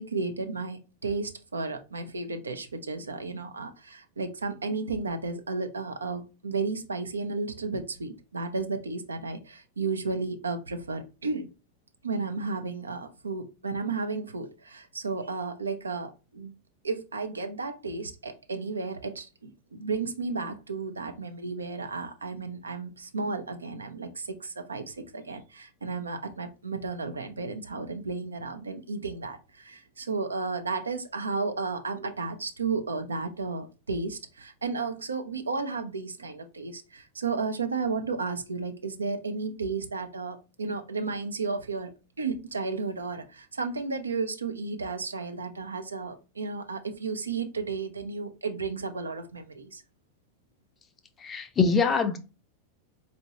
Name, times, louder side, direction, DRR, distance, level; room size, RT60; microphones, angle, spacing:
voice 1, 0.0-11.5 12.0-16.5 16.8-41.9 42.2-49.8, right 4 dB, 75° right, 0.6 m, -33 dB
voice 2, 51.2-52.2, left 5 dB, 20° left, 0.6 m, -24 dB
4.4 x 2.7 x 2.8 m
figure-of-eight pair, 90°, 0 cm